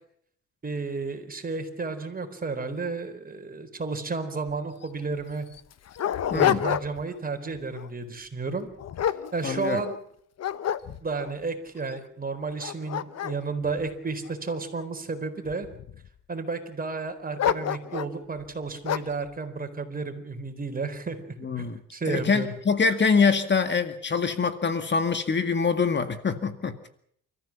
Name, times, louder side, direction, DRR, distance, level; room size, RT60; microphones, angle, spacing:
voice 1, 0.6-5.5 6.3-8.7 9.3-10.0 11.0-15.7 16.3-22.5, right 4 dB, 30° right, 7 dB, 4.3 m, -32 dB
Dog, 4.5-4.6 4.8-4.9 5.5-7.1 7.6-7.9 8.5-10.0 10.4-11.3 11.9-12.0 12.5-14.8 15.5-16.1 17.4-18.2 18.8-19.2, left 10 dB, 60° left, 1.1 m, -29 dB
voice 2, 6.3-6.6 9.4-9.8 21.4-21.8 22.1-26.9, left 5 dB, 35° left, 9 dB, 2.0 m, -24 dB
29.5 x 14.5 x 7.3 m, 0.66 s
cardioid pair, 90°, 30 cm